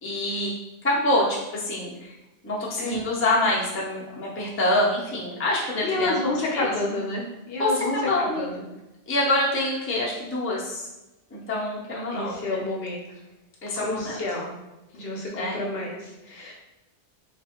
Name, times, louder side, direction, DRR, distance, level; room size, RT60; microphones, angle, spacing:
voice 1, 0.0-0.5 0.8-2.2 2.4-6.2 6.5-6.7 7.6-8.5 9.1-10.9 11.3-12.7 13.6-14.2 15.3-15.6 16.4-16.5, left 1 dB, 15° left, -5 dB, 0.4 m, -26 dB
voice 2, 5.8-8.6 12.1-13.0 13.8-14.5 14.9-16.5, left 2 dB, 65° left, -1 dB, 0.8 m, -29 dB
3.2 x 2.3 x 2.8 m, 0.98 s
omnidirectional pair, 1.2 m